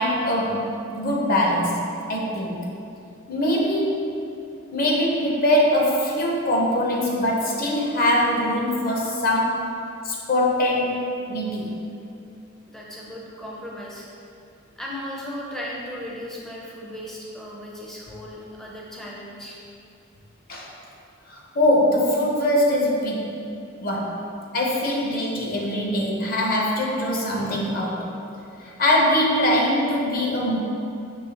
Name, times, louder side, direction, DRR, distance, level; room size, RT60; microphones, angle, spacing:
voice 1, 0.0-2.7 3.3-4.2 4.7-9.7 10.0-11.7 20.5-20.7 21.3-23.4 23.8-24.2 24.5-28.1 28.6-30.6, left 1 dB, 45° left, -2 dB, 0.6 m, -22 dB
voice 2, 12.7-14.1 14.8-19.6, left 1 dB, ahead, -5 dB, 0.4 m, -36 dB
5.4 x 3.1 x 2.8 m, 2.6 s
head